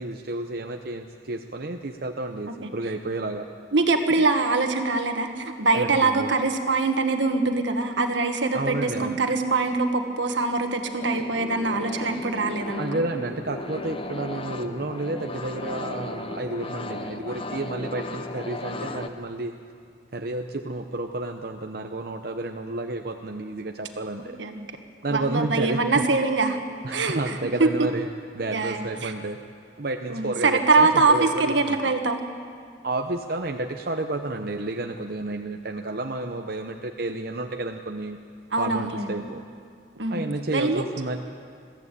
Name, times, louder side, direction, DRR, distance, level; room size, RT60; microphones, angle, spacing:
voice 1, 0.0-3.4 4.1-4.2 5.7-6.3 8.5-9.2 12.8-19.5 20.1-24.4 25.0-26.0 26.8-28.1 28.3-29.4 29.8-31.8 32.8-38.2 38.6-39.4 40.1-41.2, right 2 dB, 55° right, 3 dB, 0.8 m, -31 dB
voice 2, 3.7-13.0 24.4-24.6 25.1-26.6 26.9-27.9 28.5-29.1 30.1-32.2 38.5-39.1 40.0-40.2 40.5-40.8, right 3 dB, 80° right, 6 dB, 1.6 m, -23 dB
sound 1, 11.0-19.1, left 2 dB, 30° left, 0.9 m, -35 dB
22.0 x 14.5 x 8.4 m, 2.2 s
head